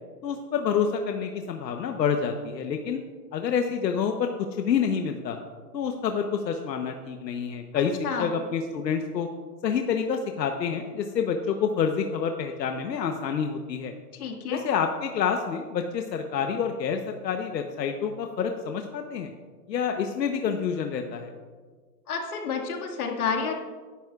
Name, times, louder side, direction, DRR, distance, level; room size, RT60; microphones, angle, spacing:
voice 1, 0.2-3.0 3.3-5.4 5.7-9.3 9.6-13.9 14.5-19.3 19.7-21.3, left 7 dB, 90° left, 5 dB, 1.1 m, -28 dB
voice 2, 7.7-8.3 14.1-14.6 22.1-23.5, left 6 dB, 60° left, 2 dB, 2.1 m, -30 dB
17.5 x 11.5 x 2.5 m, 1.5 s
hypercardioid pair, 170°, 49 cm